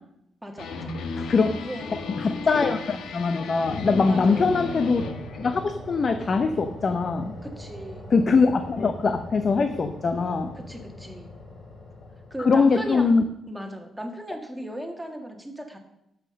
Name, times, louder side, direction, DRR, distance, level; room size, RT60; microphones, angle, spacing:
voice 1, 0.4-0.9 1.6-1.9 4.1-4.5 7.4-8.0 10.5-11.3 12.3-13.1 13.5-15.8, equal, 5° right, 3 dB, 1.6 m, -36 dB
sound 1, 0.6-5.6, left 4 dB, 85° left, 1.2 m, -34 dB
voice 2, 1.2-1.6 2.2-5.0 5.4-7.3 8.1-10.5 12.4-13.2, left 4 dB, 40° left, 7 dB, 0.7 m, -22 dB
sound 2, 1.8-3.0 3.7-13.1, left 1 dB, 55° left, 5.4 m, -42 dB
12.5 x 5.8 x 6.5 m, 0.81 s
cardioid pair, 135°, 0 cm